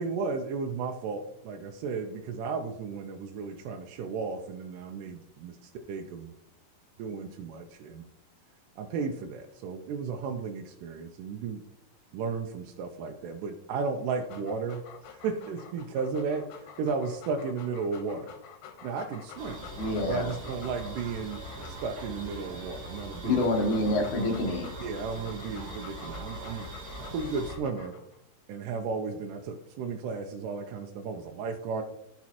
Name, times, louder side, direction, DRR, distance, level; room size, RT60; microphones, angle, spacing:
voice 1, 0.0-6.3 7.0-8.0 8.8-11.6 12.1-14.8 15.1-18.3 18.8-19.7 20.1-23.4 24.8-26.7 27.1-27.9 28.5-31.8, right 5 dB, 75° right, 3 dB, 2.1 m, -34 dB
Dog, 14.0-22.2 22.8-28.2, left 7 dB, 85° left, 2.8 m, -49 dB
sound 1, 19.4-27.6, right 1 dB, 40° right, 1.4 m, -42 dB
voice 2, 19.8-20.3 23.2-24.7, left 2 dB, 65° left, 2 dB, 2.6 m, -27 dB
14.5 x 5.9 x 3.0 m, 0.78 s
omnidirectional pair, 4.1 m